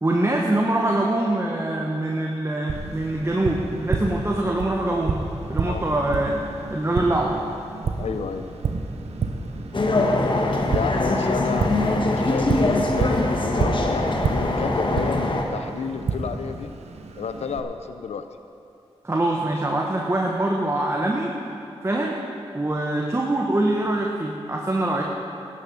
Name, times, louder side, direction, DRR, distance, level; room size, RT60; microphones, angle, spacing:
voice 1, 0.0-5.2 5.5-6.4 6.7-7.4 19.0-21.3 21.8-22.2 22.5-25.1, right 1 dB, 25° right, 0 dB, 1.4 m, -24 dB
Tap, 2.7-17.6, right 4 dB, 75° right, 0.9 m, -30 dB
voice 2, 8.0-8.5 10.7-16.7 17.2-18.3, left 6 dB, 80° left, 9 dB, 0.6 m, -31 dB
sound 1, 9.7-15.4, left 2 dB, 50° left, 1.5 m, -22 dB
14.0 x 10.0 x 5.6 m, 2.7 s
cardioid pair, 40°, 11 cm